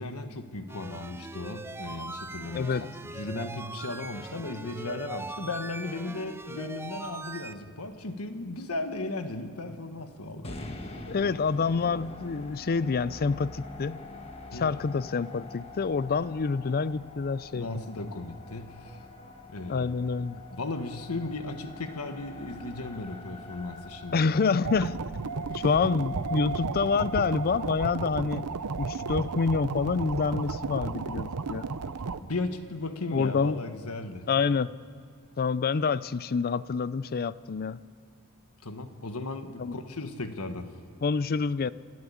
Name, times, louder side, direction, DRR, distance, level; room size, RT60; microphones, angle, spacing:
voice 1, 0.0-10.6 14.5-14.7 17.5-19.0 19.5-19.9 20.5-24.3 25.5-25.6 32.2-34.3 38.6-40.7, left 2 dB, 70° left, 8 dB, 1.4 m, -36 dB
sound 1, 0.7-7.5, right 2 dB, 10° right, 0.5 m, -41 dB
voice 2, 2.5-2.9 11.1-14.0 14.5-17.7 19.7-20.4 24.1-25.1 25.5-28.4 28.8-31.7 33.1-33.6 34.3-34.7 35.4-37.8 39.6-39.8 41.0-41.7, left 5 dB, 45° left, 18 dB, 0.5 m, -27 dB
sound 2, 10.4-26.6, left 2 dB, 25° left, 1.5 m, -45 dB
sound 3, 24.6-32.2, right 4 dB, 85° right, 0.7 m, -33 dB
28.0 x 12.5 x 8.5 m, 2.3 s
head